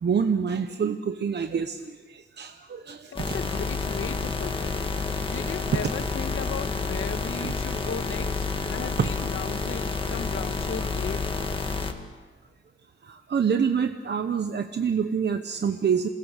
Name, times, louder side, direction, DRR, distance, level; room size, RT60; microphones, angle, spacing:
voice 1, 0.0-3.4 7.4-7.5 9.0-9.1 13.0-16.1, right 6 dB, 55° right, 8 dB, 0.9 m, -27 dB
voice 2, 3.1-4.8 5.3-11.5, left 6 dB, 85° left, 8 dB, 1.4 m, -36 dB
sound 1, 3.2-11.9, left 3 dB, 25° left, 1.9 m, -29 dB
27.0 x 19.5 x 6.6 m, 1.4 s
wide cardioid pair, 125°, 20 cm